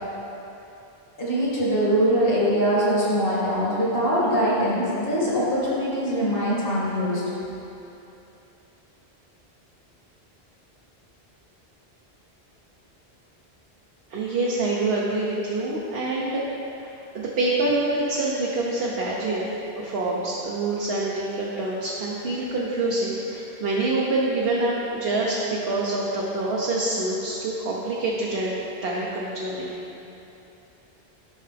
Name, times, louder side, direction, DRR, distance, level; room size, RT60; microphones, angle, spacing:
voice 1, 1.2-7.2, equal, 60° left, -8 dB, 2.4 m, -22 dB
voice 2, 14.1-16.4 17.1-29.7, right 2 dB, 70° right, -5 dB, 1.1 m, -26 dB
11.5 x 5.7 x 3.4 m, 2.9 s
omnidirectional pair, 1.1 m